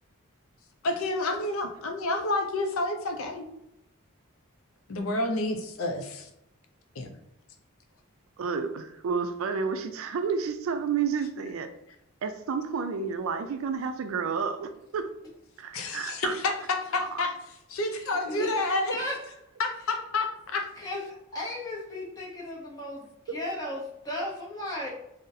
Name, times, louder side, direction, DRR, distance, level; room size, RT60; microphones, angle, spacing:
voice 1, 0.8-3.5 4.9-6.3 7.0-7.1 15.7-19.0 19.6-20.7, left 2 dB, 75° left, 5 dB, 0.5 m, -29 dB
voice 2, 8.4-11.7 12.2-15.1 15.6-16.3, right 6 dB, 70° right, 9 dB, 0.3 m, -30 dB
voice 3, 17.9-19.4 20.8-24.9, left 1 dB, 15° left, -4 dB, 0.7 m, -36 dB
3.8 x 2.0 x 2.6 m, 0.82 s
head